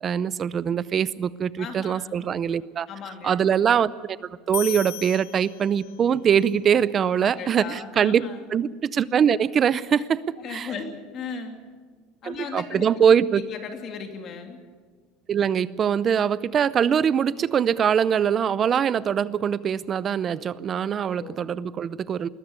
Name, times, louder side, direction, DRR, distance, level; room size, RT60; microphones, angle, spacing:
voice 1, 0.0-2.9 3.2-3.9 4.5-8.2 8.5-10.2 10.5-10.7 12.2-13.4 15.3-22.3, right 8 dB, 30° right, 19 dB, 0.6 m, -23 dB
voice 2, 1.6-2.2 2.9-3.5 7.2-8.4 10.4-11.6 12.2-12.8 13.5-14.6 21.2-21.5, left 6 dB, 40° left, 5 dB, 2.7 m, -37 dB
sound 1, 4.5-6.2, left 13 dB, 80° left, 1.6 m, -35 dB
20.5 x 13.5 x 9.6 m, 1.5 s
cardioid pair, 150°, 0 cm